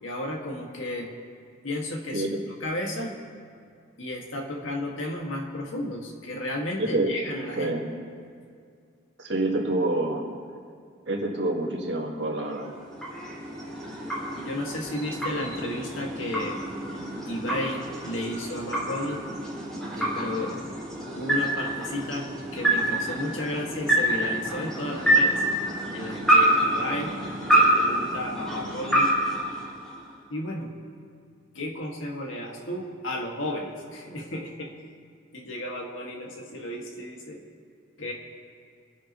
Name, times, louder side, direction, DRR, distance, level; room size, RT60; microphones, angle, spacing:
voice 1, 0.0-1.1 1.6-2.3 2.6-3.2 4.0-7.7 14.3-16.6 17.2-19.2 19.9-20.6 21.1-25.4 25.9-27.2 27.5-29.1 30.3-30.7 31.5-34.7 35.3-37.4 38.0-38.1, left 1 dB, 85° left, 0 dB, 2.0 m, -33 dB
voice 2, 6.8-7.1 7.6-7.9 9.2-10.2 11.1-12.7, right 2 dB, 60° right, -1 dB, 1.9 m, -27 dB
sound 1, 12.4-30.2, right 1 dB, 5° left, 3.7 m, -27 dB
26.0 x 9.9 x 3.1 m, 2.2 s
head